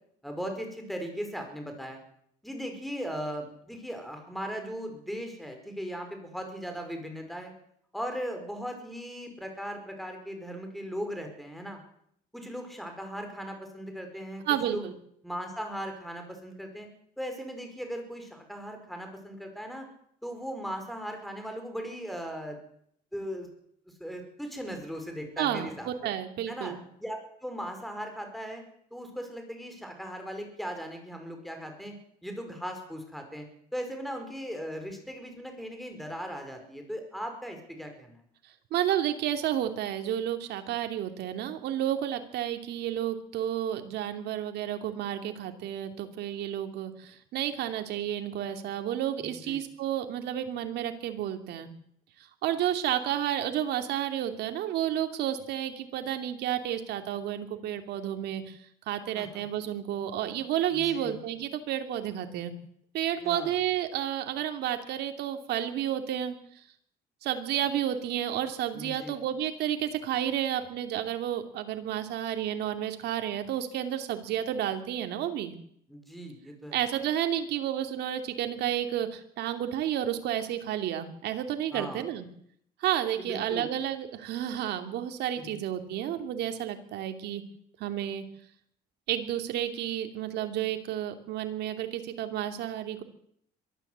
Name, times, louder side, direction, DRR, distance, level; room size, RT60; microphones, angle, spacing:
voice 1, 0.2-2.0 2.4-7.5 7.9-11.8 12.3-14.9 15.2-16.9 17.2-19.9 20.2-22.6 23.1-23.5 24.0-26.1 26.5-26.7 27.0-28.6 28.9-32.0 32.2-33.5 33.7-38.2 49.2-49.6 59.1-59.5 60.7-61.2 63.2-63.5 68.7-69.2 75.9-76.8 81.7-82.0 83.2-83.7 85.4-85.6, equal, ahead, 5 dB, 5.2 m, -38 dB
voice 2, 14.5-14.9 25.4-26.8 38.7-51.7 52.4-58.6 58.9-62.5 62.9-66.4 67.2-75.6 76.7-82.3 82.8-87.4 87.8-88.2 89.1-93.0, right 11 dB, 75° right, 6 dB, 2.9 m, -31 dB
23.0 x 13.5 x 8.2 m, 0.69 s
cardioid pair, 110°, 17 cm